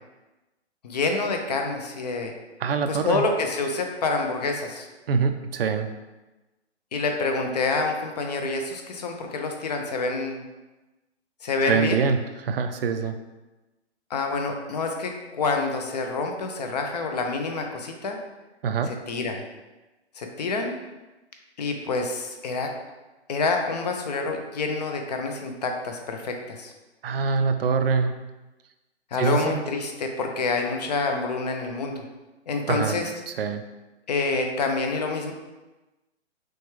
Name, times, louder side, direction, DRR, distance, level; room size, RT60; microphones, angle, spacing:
voice 1, 0.8-2.3 2.9-4.9 6.9-10.4 11.4-12.0 14.1-18.2 18.9-19.5 20.2-20.7 21.6-22.7 23.3-26.7 29.1-32.0 32.5-33.1 34.1-35.3, left 3 dB, 40° left, 3 dB, 0.5 m, -27 dB
voice 2, 2.6-3.2 5.1-5.9 11.6-13.2 18.6-18.9 27.0-28.1 29.2-29.6 32.7-33.0 33.4-33.6, right 5 dB, 60° right, 8 dB, 0.4 m, -24 dB
6.1 x 2.3 x 3.1 m, 1.1 s
hypercardioid pair, 145°, 34 cm